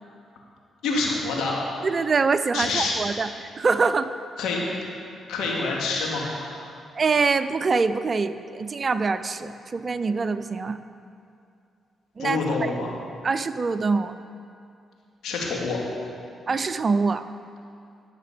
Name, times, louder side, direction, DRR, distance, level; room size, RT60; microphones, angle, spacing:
voice 1, 0.8-1.6 2.5-2.9 4.4-4.6 5.3-6.7 12.2-13.0 15.2-15.8, left 3 dB, 75° left, -2 dB, 2.3 m, -27 dB
voice 2, 1.8-3.3 3.6-4.1 6.9-10.8 12.2-12.4 13.2-14.1 16.5-17.3, right 4 dB, 45° right, 12 dB, 0.5 m, -24 dB
17.0 x 6.8 x 5.2 m, 2.5 s
hypercardioid pair, 45°, 0 cm